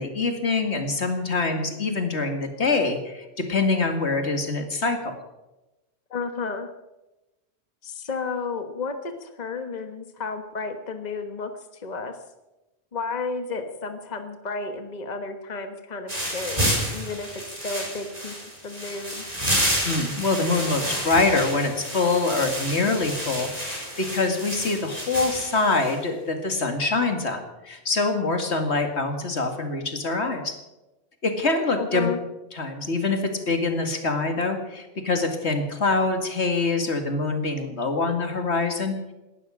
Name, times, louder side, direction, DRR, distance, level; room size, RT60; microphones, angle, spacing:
voice 1, 0.0-5.2 19.8-30.6 31.2-32.1 32.5-39.1, left 3 dB, 85° left, 5 dB, 2.4 m, -25 dB
voice 2, 6.1-6.7 7.8-12.1 12.9-18.3 18.6-19.2 31.8-32.2, left 4 dB, 40° left, 7 dB, 1.4 m, -32 dB
sound 1, 16.1-26.0, equal, 35° right, 5.3 m, -30 dB
18.5 x 12.5 x 6.3 m, 1.0 s
omnidirectional pair, 1.1 m